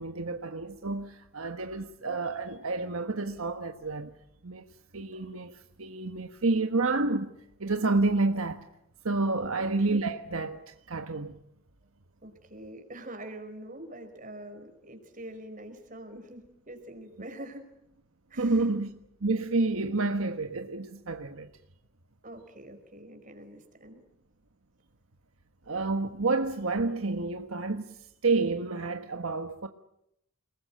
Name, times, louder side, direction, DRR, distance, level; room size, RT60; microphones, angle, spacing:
voice 1, 0.0-4.2 4.4-4.7 4.9-7.3 7.6-8.7 9.0-11.4 18.4-21.5 25.7-29.7, right 3 dB, 75° right, 1.4 m, -29 dB
voice 2, 12.2-17.7 18.3-18.7 22.2-24.0, right 1 dB, 35° right, 5.0 m, -45 dB
29.5 x 20.5 x 8.9 m
head